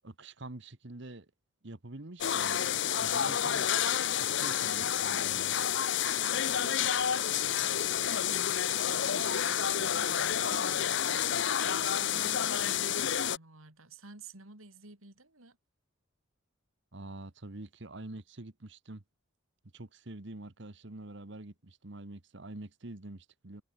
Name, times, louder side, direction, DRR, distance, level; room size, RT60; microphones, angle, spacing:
voice 1, 0.0-1.3 1.6-3.7 4.1-5.6 16.9-19.0 19.7-23.6, right 2 dB, 55° right, 1.4 m, -46 dB
sound 1, 2.2-13.4, left 9 dB, 55° left, 0.7 m, -29 dB
voice 2, 6.2-15.6, right 4 dB, 75° right, 3.8 m, -53 dB
head